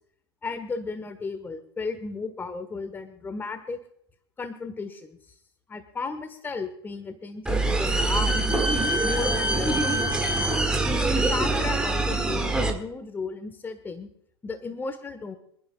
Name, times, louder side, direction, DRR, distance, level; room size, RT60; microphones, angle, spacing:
voice 1, 0.4-3.8 4.4-5.2 5.7-8.6 9.0-10.3 11.1-14.1 14.4-15.4, left 4 dB, 15° left, 10 dB, 1.3 m, -34 dB
sound 1, 7.5-12.7, right 2 dB, 5° right, 1.8 m, -24 dB
26.0 x 10.5 x 2.3 m, 0.68 s
figure-of-eight pair, 90°, 14 cm